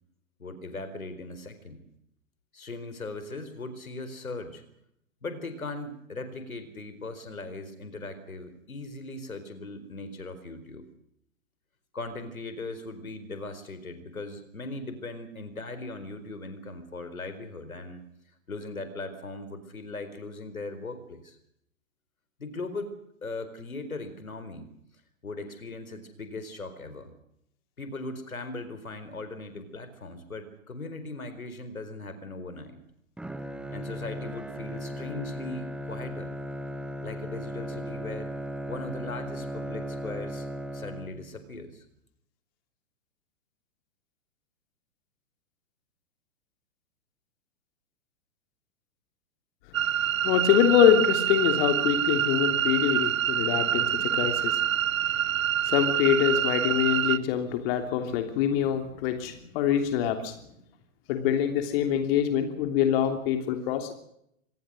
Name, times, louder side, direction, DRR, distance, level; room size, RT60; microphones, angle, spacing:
voice 1, 0.4-1.8 2.5-4.6 5.2-10.9 11.9-18.0 18.5-21.4 22.4-22.9 23.2-24.7 25.2-27.1 27.8-32.8 33.7-36.3 37.0-38.3 38.7-40.5 40.7-41.8, left 2 dB, 85° left, 11 dB, 4.5 m, -39 dB
Bowed string instrument, 33.2-41.5, equal, ahead, 1.4 m, -37 dB
voice 2, 49.7-55.1 55.6-60.3 61.1-63.9, left 9 dB, 45° left, 7 dB, 3.2 m, -25 dB
sound 1, 49.7-57.2, right 10 dB, 70° right, 0.8 m, -26 dB
26.0 x 19.5 x 6.4 m, 0.75 s
figure-of-eight pair, 110°, 41 cm